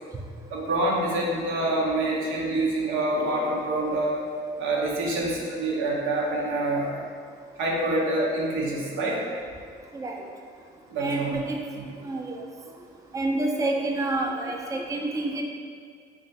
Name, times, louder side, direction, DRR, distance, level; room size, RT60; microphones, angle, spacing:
voice 1, 0.5-4.2 4.6-7.0 7.6-9.2 10.9-11.4 11.8-11.9, right 2 dB, 85° right, -3 dB, 0.6 m, -26 dB
voice 2, 11.0-11.6 12.0-12.4 13.1-15.4, right 2 dB, 15° right, 1 dB, 0.4 m, -28 dB
3.0 x 2.3 x 4.0 m, 2.1 s
cardioid pair, 90°, 20 cm